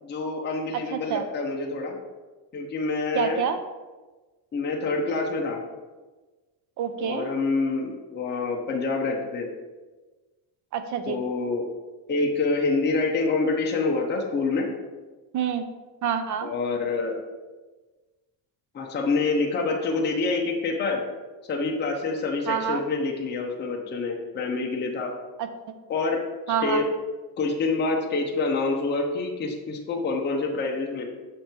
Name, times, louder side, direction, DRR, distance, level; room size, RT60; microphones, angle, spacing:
voice 1, 0.0-2.0 2.5-3.4 4.5-5.6 7.0-9.5 11.1-11.7 12.1-14.7 16.4-17.2 18.7-21.0 21.5-25.1 25.9-26.2 26.6-26.8 27.4-31.1, left 3 dB, 25° left, 0 dB, 0.7 m, -26 dB
voice 2, 0.9-1.2 3.1-3.6 6.8-7.3 10.7-11.2 15.3-15.7 16.0-16.5 22.5-22.8 25.4-25.5 26.5-26.9, right 8 dB, 40° right, 9 dB, 0.5 m, -27 dB
6.6 x 3.3 x 4.4 m, 1.3 s
cardioid pair, 130°, 46 cm